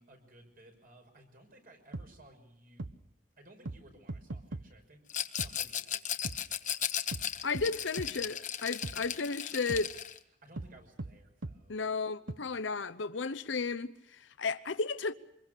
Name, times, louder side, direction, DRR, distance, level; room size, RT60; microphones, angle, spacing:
voice 1, 0.0-2.8 3.4-5.0 5.3-6.7 10.4-11.8, right 1 dB, 50° right, 6.2 m, -58 dB
sound 1, 1.9-2.1 2.8-2.9 3.6-3.8 4.1-4.6 5.4-5.5 6.2-6.4 7.1-7.2 7.5-7.7 8.0-8.1 8.8-9.0 9.7-9.8 10.6-10.7 11.0-11.1 11.4-11.6 12.3-12.4, right 2 dB, 80° right, 1.0 m, -39 dB
Rattle, 5.1-10.2, left 10 dB, 45° left, 1.1 m, -36 dB
voice 2, 7.4-9.9 11.7-15.1, left 4 dB, 75° left, 0.8 m, -34 dB
26.0 x 22.0 x 6.7 m
head